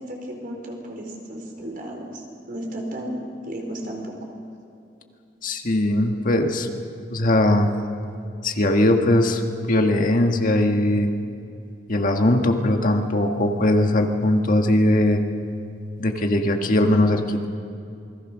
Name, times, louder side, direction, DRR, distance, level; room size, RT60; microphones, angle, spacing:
voice 1, 0.0-4.1, right 1 dB, 55° right, 1 dB, 4.6 m, -34 dB
voice 2, 5.4-6.7 7.1-7.7 8.4-9.4 9.7-11.1 11.9-15.2 16.0-17.5, left 1 dB, 50° left, 4 dB, 1.7 m, -20 dB
27.5 x 21.5 x 6.3 m, 2.6 s
head